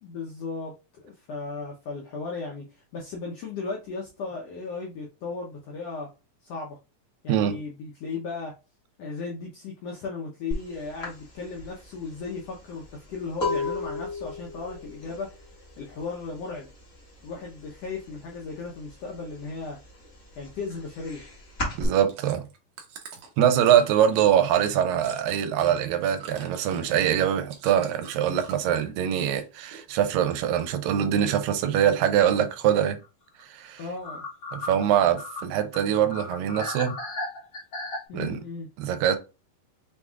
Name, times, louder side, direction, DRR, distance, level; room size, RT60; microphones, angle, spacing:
voice 1, 0.0-0.7 1.0-6.1 6.4-6.8 7.2-8.5 9.0-15.3 15.8-16.7 17.2-19.8 20.4-21.2 33.8-34.2 38.1-38.7, left 4 dB, 80° left, 1.4 m, -36 dB
sound 1, 10.5-10.7 11.0-16.7 17.0-17.5 17.8-18.9 19.3-21.9, left 3 dB, 35° left, 1.4 m, -33 dB
Chewing mastication, 21.7-28.8 29.1-29.8 30.1-31.0 31.5-31.6, right 6 dB, 70° right, 1.6 m, -46 dB
voice 2, 21.8-22.5 23.4-33.0 33.5-33.8 34.5-37.0 38.1-38.4 38.8-39.2, right 10 dB, 85° right, 2.3 m, -23 dB
sound 2, 29.9-30.1 30.5-30.6 33.0-33.1 33.4-33.5 33.8-38.0, left 2 dB, 55° left, 1.2 m, -36 dB
5.9 x 3.5 x 2.3 m
omnidirectional pair, 4.0 m